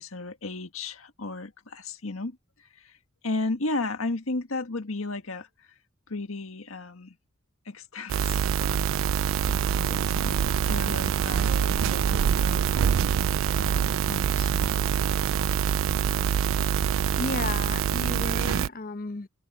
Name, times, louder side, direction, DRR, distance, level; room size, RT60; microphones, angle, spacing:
voice 1, 0.0-3.0 3.2-5.7 6.1-7.2 7.7-8.8 9.5-12.8 13.6-14.8, left 2 dB, 90° left, 1.8 m, -35 dB
sound 1, 8.1-18.7, right 8 dB, 70° right, 0.3 m, -25 dB
voice 2, 16.8-19.3, left 3 dB, 45° left, 0.8 m, -34 dB
open air
head